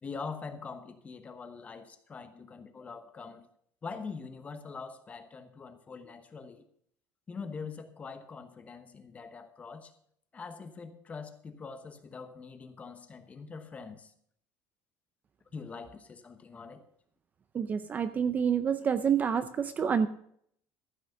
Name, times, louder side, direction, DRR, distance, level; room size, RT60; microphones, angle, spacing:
voice 1, 0.0-3.5 3.8-6.6 7.3-9.9 10.3-14.1 15.5-16.8, left 5 dB, 20° left, 9 dB, 1.0 m, -43 dB
voice 2, 17.5-20.1, right 7 dB, 25° right, 11 dB, 0.5 m, -28 dB
14.5 x 6.1 x 6.5 m, 0.65 s
cardioid pair, 165°, 7 cm